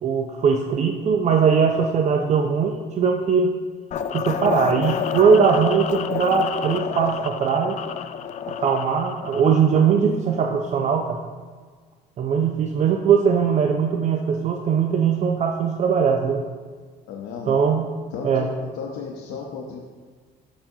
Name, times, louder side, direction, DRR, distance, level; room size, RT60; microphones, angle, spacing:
voice 1, 0.0-3.6 4.1-7.8 8.6-11.2 12.2-16.4 17.5-18.0 18.2-18.5, right 6 dB, 45° right, 3 dB, 0.5 m, -20 dB
sound 1, 3.9-9.9, left 8 dB, 45° left, 0.4 m, -29 dB
voice 2, 17.1-17.6 18.1-19.8, left 5 dB, 85° left, -1 dB, 0.7 m, -34 dB
7.2 x 6.9 x 2.7 m, 1.5 s
cardioid pair, 110°, 17 cm